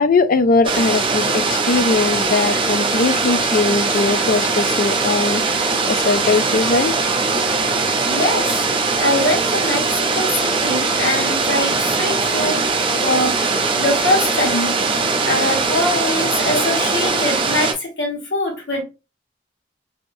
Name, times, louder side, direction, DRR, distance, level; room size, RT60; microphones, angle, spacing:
voice 1, 0.0-5.4 5.9-6.9 7.4-7.5, left 3 dB, 50° left, 0.4 m, -19 dB
sound 1, 0.6-17.7, right 4 dB, 30° right, 0.5 m, -20 dB
voice 2, 8.1-8.6 9.0-12.6 13.0-14.8 15.3-18.8, left 1 dB, 80° left, 1.3 m, -22 dB
3.2 x 2.7 x 2.6 m
head